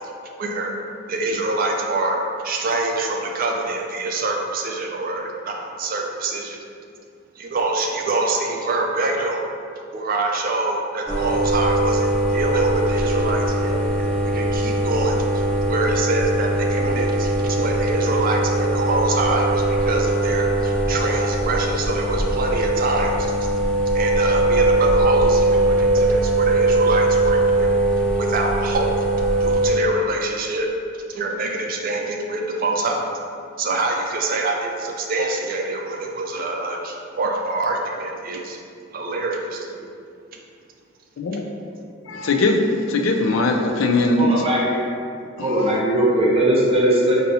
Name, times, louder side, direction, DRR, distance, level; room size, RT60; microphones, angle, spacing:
voice 1, 0.2-0.7 1.1-6.6 7.4-9.4 9.9-23.5 23.9-27.7 28.2-28.9 29.4-30.7 31.1-33.1 33.6-38.6 38.9-39.9, right 2 dB, 45° right, 1 dB, 0.4 m, -25 dB
sound 1, 11.1-29.7, right 1 dB, 5° left, 0.8 m, -21 dB
voice 2, 42.1-44.5 45.4-45.8, left 2 dB, 75° left, 3 dB, 0.4 m, -20 dB
voice 3, 43.9-44.8 45.4-47.1, right 1 dB, 30° right, -5 dB, 0.8 m, -19 dB
5.3 x 2.7 x 2.7 m, 2.4 s
head